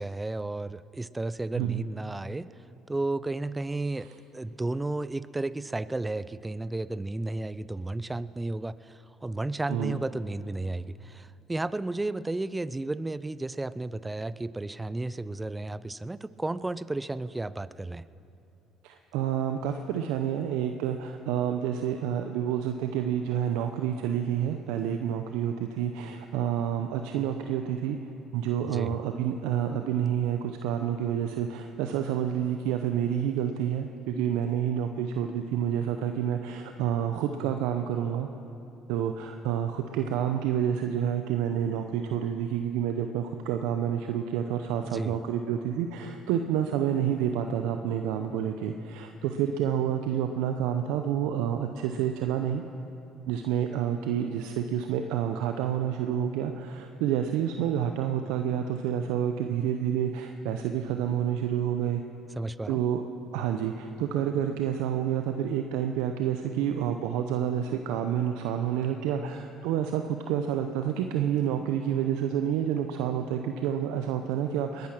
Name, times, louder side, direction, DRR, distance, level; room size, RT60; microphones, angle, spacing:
voice 1, 0.0-2.5 2.9-18.1 28.7-28.9 44.8-45.2 62.4-62.8, right 2 dB, 15° right, 17 dB, 0.5 m, -33 dB
voice 2, 1.5-1.9 4.0-4.1 9.7-10.0 18.8-28.0 28.3-38.3 38.9-52.6 53.3-62.0 62.7-63.0 63.3-74.9, right 9 dB, 80° right, 6 dB, 0.7 m, -29 dB
20.5 x 11.0 x 6.0 m, 2.8 s
supercardioid pair, 70°, 0 cm